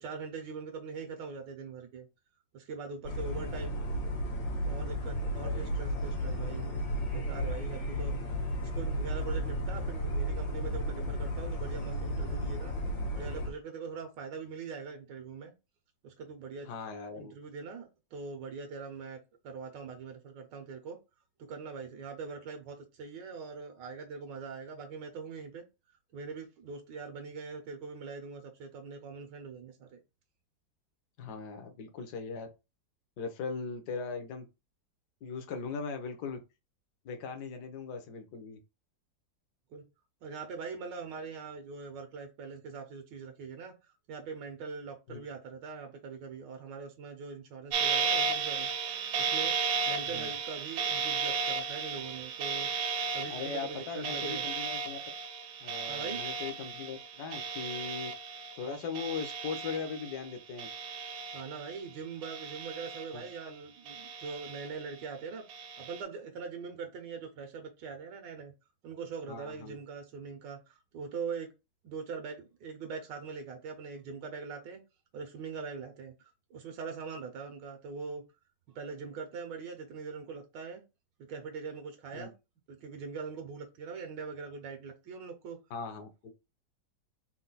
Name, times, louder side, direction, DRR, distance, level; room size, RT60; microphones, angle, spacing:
voice 1, 0.0-2.1 2.5-3.8 4.6-6.8 7.1-8.1 8.6-12.7 13.1-15.5 16.0-16.7 17.1-19.2 19.4-21.0 21.4-25.6 26.1-30.0 39.7-39.8 40.2-49.5 49.9-52.7 53.1-54.4 55.9-56.2 61.3-65.4 65.8-68.5 68.8-71.5 71.8-74.8 75.1-78.2 78.7-80.8 81.3-82.3 82.7-85.6, right 5 dB, 85° right, 1.5 m, -42 dB
sound 1, 3.1-13.5, equal, 85° left, 1.9 m, -33 dB
voice 2, 3.3-3.6 5.3-6.0 16.7-17.3 31.2-32.5 33.2-34.5 35.2-36.4 37.0-38.6 45.1-45.2 50.1-50.3 53.3-55.0 55.6-58.1 58.5-60.7 63.1-63.2 69.3-69.8 82.1-82.3 85.7-86.3, left 5 dB, 65° left, 1.4 m, -39 dB
sound 2, 47.7-60.3 60.6-61.8 62.2-63.4 63.9-64.9 65.5-66.0, right 5 dB, 65° right, 1.0 m, -34 dB
4.4 x 2.3 x 3.9 m
omnidirectional pair, 1.9 m